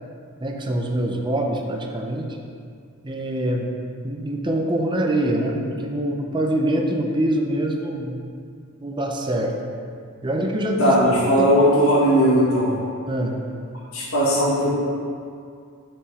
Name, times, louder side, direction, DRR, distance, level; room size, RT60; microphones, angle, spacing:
voice 1, 0.4-2.3 3.0-3.7 4.0-8.3 8.8-9.5 10.2-11.0 11.4-11.5 13.1-13.5, right 1 dB, 20° right, 1 dB, 0.6 m, -24 dB
voice 2, 10.8-12.8 13.9-14.7, equal, 70° left, -6 dB, 1.7 m, -18 dB
5.4 x 4.9 x 5.5 m, 2.3 s
head